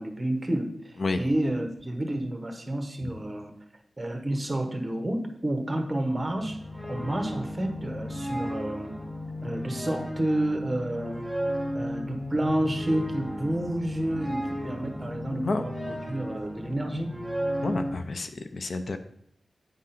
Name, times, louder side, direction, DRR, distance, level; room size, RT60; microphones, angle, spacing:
voice 1, 0.0-3.5 4.0-6.6 6.8-9.0 9.4-11.2 11.7-17.1, right 1 dB, 20° right, 5 dB, 1.1 m, -30 dB
sound 1, 6.3-18.0, equal, 5° left, 0.7 m, -34 dB
voice 2, 17.6-19.0, left 3 dB, 55° left, 8 dB, 0.5 m, -30 dB
8.8 x 3.7 x 5.7 m, 0.69 s
wide cardioid pair, 130°, 0 cm